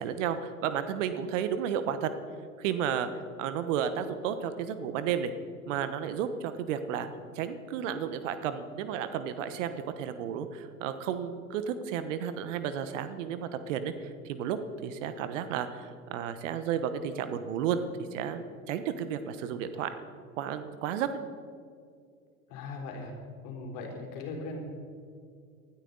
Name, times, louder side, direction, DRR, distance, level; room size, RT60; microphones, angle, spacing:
voice 1, 0.0-2.1 2.6-3.1 3.4-5.3 5.7-7.1 7.3-13.9 14.2-17.8 18.1-19.9 20.4-21.2, right 8 dB, 60° right, 10 dB, 1.2 m, -32 dB
voice 2, 22.5-23.1 23.4-24.6, left 3 dB, 50° left, 0 dB, 3.9 m, -39 dB
19.5 x 13.0 x 4.0 m, 2.3 s
hypercardioid pair, 85°, 42 cm